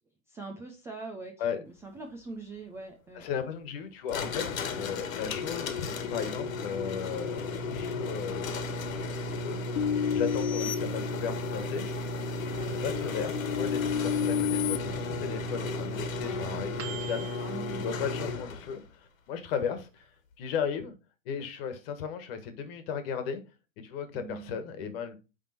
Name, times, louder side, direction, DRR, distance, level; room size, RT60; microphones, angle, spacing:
voice 1, 0.3-3.2 10.5-10.7 12.5-12.8 16.2-16.7 17.4-17.8 24.1-24.6, right 3 dB, 5° right, 0.4 m, -43 dB
voice 2, 3.1-4.4 4.7-8.5 9.2-9.6 10.1-11.9 12.8-17.4 17.8-20.1 20.4-20.9 21.2-23.4 23.8-25.2, left 7 dB, 45° left, 1.6 m, -35 dB
sound 1, 4.1-18.8, left 3 dB, 85° left, 1.5 m, -34 dB
sound 2, 9.8-11.7 12.2-14.8, left 9 dB, 65° left, 1.2 m, -31 dB
Microwave oven, 12.6-18.6 19.0-19.1 19.4-20.0, right 7 dB, 40° right, 1.2 m, -46 dB
9.2 x 3.6 x 4.2 m
hypercardioid pair, 145°, 39 cm